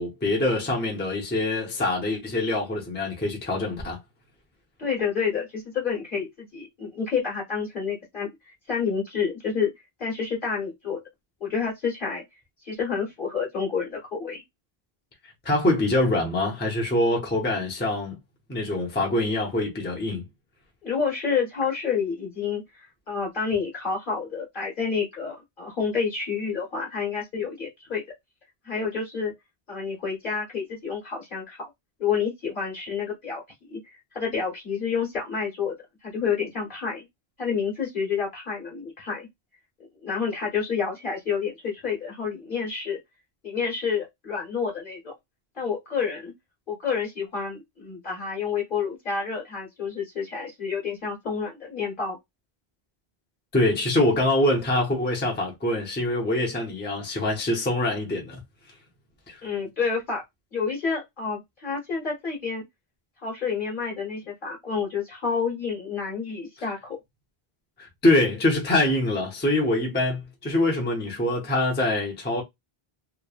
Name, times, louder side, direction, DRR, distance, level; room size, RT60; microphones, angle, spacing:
voice 1, 0.0-4.0 15.4-18.1 18.5-20.2 53.5-58.4 59.3-59.4 67.8-72.4, left 1 dB, 10° left, 0.6 m, -24 dB
voice 2, 4.8-8.3 8.7-9.7 10.0-11.0 11.4-12.2 12.6-14.4 20.8-28.0 28.6-29.3 29.7-31.7 32.0-33.8 34.1-35.7 36.0-37.0 37.4-39.3 40.0-43.0 43.4-45.1 45.6-46.3 46.7-52.2 59.4-60.2 60.5-62.6 63.2-67.0, left 6 dB, 55° left, 1.2 m, -29 dB
3.1 x 2.1 x 2.3 m
omnidirectional pair, 1.0 m